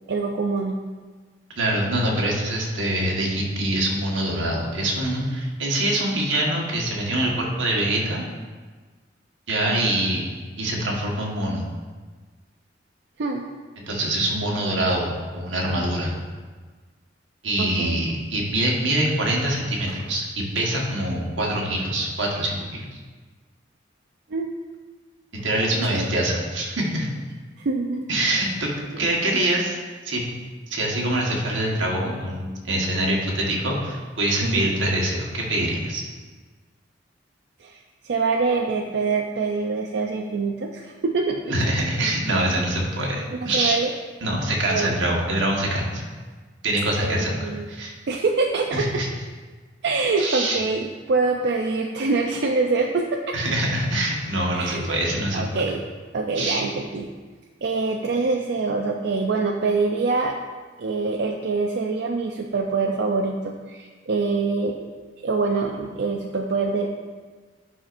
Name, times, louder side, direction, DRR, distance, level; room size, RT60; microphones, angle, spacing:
voice 1, 0.1-0.8 9.7-9.9 13.2-13.5 17.6-17.9 24.3-24.5 25.9-26.1 27.6-28.1 28.3-28.5 34.4-34.7 37.6-41.4 43.3-43.9 44.7-44.9 47.0-47.7 48.1-49.0 49.8-53.4 54.5-54.9 55.3-55.8 56.1-57.1 57.6-60.4 60.8-64.7 65.2-66.9, right 4 dB, 65° right, 2 dB, 0.4 m, -25 dB
voice 2, 1.6-8.2 9.5-10.2 10.6-11.7 13.9-16.1 17.4-23.0 25.4-27.1 28.1-28.7 29.0-29.8 30.0-30.2 30.7-36.0 41.5-43.8 44.2-46.0 46.6-47.9 48.7-49.1 50.2-50.6 53.3-55.4 56.3-56.6, right 1 dB, 90° right, -2 dB, 1.4 m, -24 dB
9.6 x 5.7 x 2.5 m, 1.4 s
head